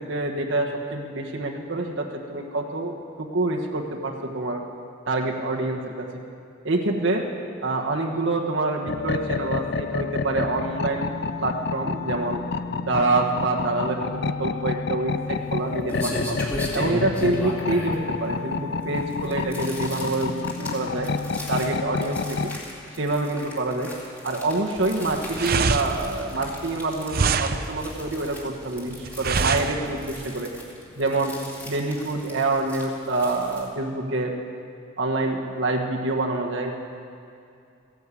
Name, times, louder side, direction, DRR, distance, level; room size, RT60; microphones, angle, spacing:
voice 1, 0.0-4.6 5.1-6.1 6.6-7.2 7.6-11.1 11.4-12.4 12.8-16.4 16.7-21.1 21.5-22.5 23.0-23.9 24.2-30.5 30.9-31.3 31.6-34.3 35.0-36.7, right 2 dB, 65° right, 0 dB, 1.3 m, -26 dB
sound 1, 8.9-22.6, left 4 dB, 55° left, 0.5 m, -29 dB
sound 2, 15.1-33.7, equal, 10° left, 2.5 m, -37 dB
sound 3, 24.8-30.3, right 5 dB, 50° right, 0.6 m, -26 dB
15.0 x 11.0 x 8.4 m, 2.5 s
head